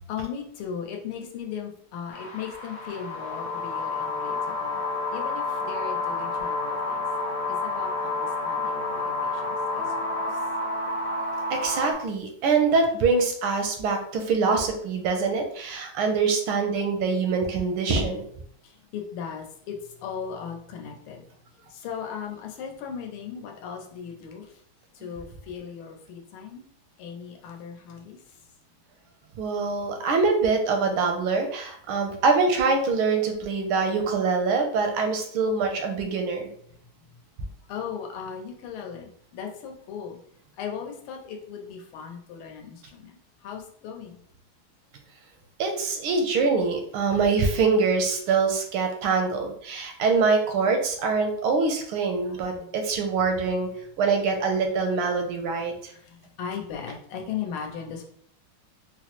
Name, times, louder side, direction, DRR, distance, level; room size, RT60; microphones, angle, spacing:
voice 1, 0.1-4.8 5.1-7.1 7.5-9.9 10.1-10.4 18.6-21.3 21.7-24.5 24.9-26.7 27.0-28.2 37.7-40.2 40.6-43.2 43.4-44.2 52.3-52.7 55.9-58.1, left 7 dB, 90° left, 2 dB, 1.6 m, -37 dB
sound 1, 2.1-11.9, left 3 dB, 70° left, 0.8 m, -29 dB
voice 2, 11.5-18.2 29.4-36.5 45.6-53.7 54.0-55.9, right 4 dB, 80° right, 4 dB, 1.4 m, -24 dB
4.3 x 2.0 x 2.9 m, 0.63 s
omnidirectional pair, 2.3 m